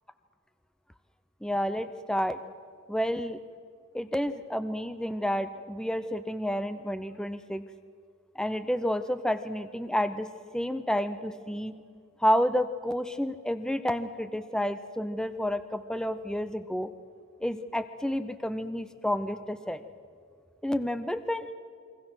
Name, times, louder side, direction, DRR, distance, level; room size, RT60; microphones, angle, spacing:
voice 1, 1.4-2.4 2.9-3.4 3.9-7.6 8.4-11.8 12.2-16.9 17.4-19.8 20.6-21.5, equal, 5° left, 11 dB, 0.6 m, -30 dB
29.0 x 22.5 x 6.2 m, 2.2 s
head